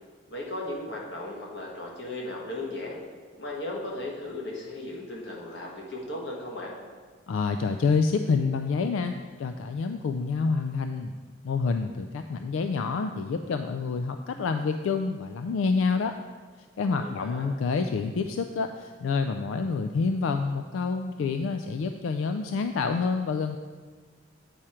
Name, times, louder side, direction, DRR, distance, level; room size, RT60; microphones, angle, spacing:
voice 1, 0.3-3.0 3.4-6.7 17.0-17.4, left 1 dB, 60° left, -2 dB, 1.5 m, -36 dB
voice 2, 7.3-11.1 11.4-16.1 16.8-23.6, left 4 dB, 90° left, 7 dB, 0.3 m, -28 dB
8.7 x 4.9 x 4.4 m, 1.5 s
head